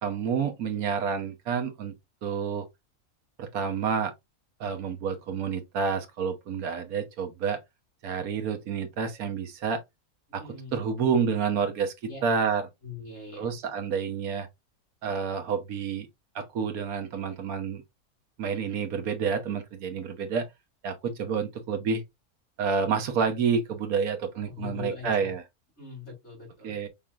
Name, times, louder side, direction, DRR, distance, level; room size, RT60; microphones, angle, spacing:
voice 1, 0.0-1.9 2.2-2.7 3.4-4.1 4.6-7.6 8.0-9.8 10.3-10.4 10.7-12.7 13.4-14.5 15.0-16.1 16.3-17.8 18.4-20.5 20.8-22.0 22.6-25.4 26.6-26.9, right 6 dB, 80° right, 1.4 m, -29 dB
voice 2, 10.4-10.8 12.1-12.2 12.8-13.5 24.5-25.3 25.8-26.7, left 4 dB, 45° left, 3.5 m, -41 dB
5.6 x 3.6 x 2.4 m
omnidirectional pair, 1.5 m